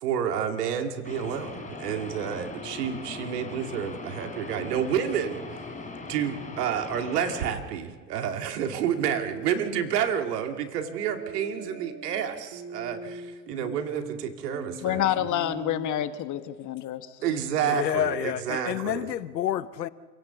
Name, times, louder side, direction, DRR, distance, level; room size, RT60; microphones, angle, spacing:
voice 1, 0.0-5.4 6.1-15.1 17.2-19.1, right 8 dB, 75° right, 6 dB, 2.3 m, -29 dB
sound 1, 1.0-7.5, left 3 dB, 15° left, 3.9 m, -40 dB
sound 2, 8.9-9.7 10.8-15.9, right 4 dB, 35° right, 4.0 m, -41 dB
voice 2, 14.8-17.2 17.7-17.8, left 11 dB, 40° left, 10 dB, 1.5 m, -28 dB
voice 3, 17.6-19.9, left 11 dB, 85° left, 16 dB, 0.9 m, -29 dB
28.0 x 17.0 x 7.0 m, 1.4 s
hypercardioid pair, 95°, 48 cm